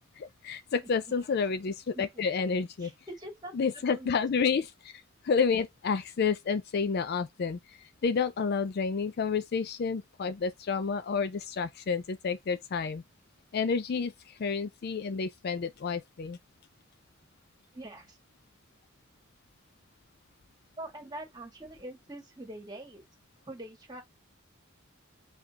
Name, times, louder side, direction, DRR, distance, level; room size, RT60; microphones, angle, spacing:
voice 1, 0.2-2.9 3.5-13.0 13.5-16.4, left 5 dB, 50° left, 0.4 m, -30 dB
voice 2, 2.8-4.1 17.7-18.2 20.8-23.0 23.5-24.0, right 1 dB, 20° right, 1.6 m, -44 dB
5.0 x 3.6 x 2.8 m
head